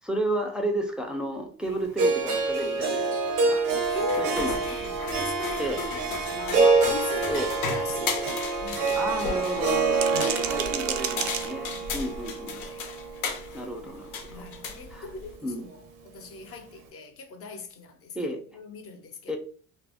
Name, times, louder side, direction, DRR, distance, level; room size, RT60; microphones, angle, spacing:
voice 1, 0.0-3.6 4.2-4.6 5.6-5.8 7.3-7.5 9.0-12.6 13.5-14.4 14.9-15.1 15.4-15.7 18.1-18.4 19.3-19.4, right 1 dB, 5° right, 0.4 m, -32 dB
Harp, 2.0-14.1, right 4 dB, 90° right, 0.7 m, -27 dB
sound 1, 3.7-15.4, left 5 dB, 90° left, 0.7 m, -36 dB
voice 2, 3.9-9.5 10.1-12.1 12.5-12.8 13.7-13.9 14.3-19.4, left 5 dB, 45° left, 0.6 m, -41 dB
sound 2, 4.7-4.8 5.2-5.4 5.8-5.9 6.2-6.3 6.7-6.9 7.3-7.4 7.9-8.9 9.7-12.0, right 9 dB, 60° right, 0.5 m, -34 dB
2.4 x 2.0 x 3.4 m
cardioid pair, 115°, 33 cm